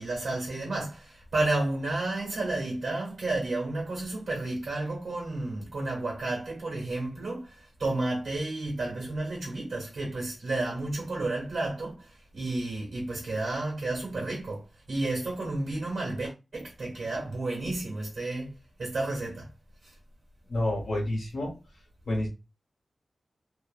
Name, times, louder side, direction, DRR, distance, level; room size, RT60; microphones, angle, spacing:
voice 1, 0.0-18.5 18.8-19.5 19.8-19.9, right 2 dB, 65° right, 1.1 m, -31 dB
voice 2, 20.5-21.5 22.1-22.3, left 1 dB, 85° left, 1.3 m, -29 dB
2.7 x 2.1 x 2.5 m
wide cardioid pair, 130°, 0 cm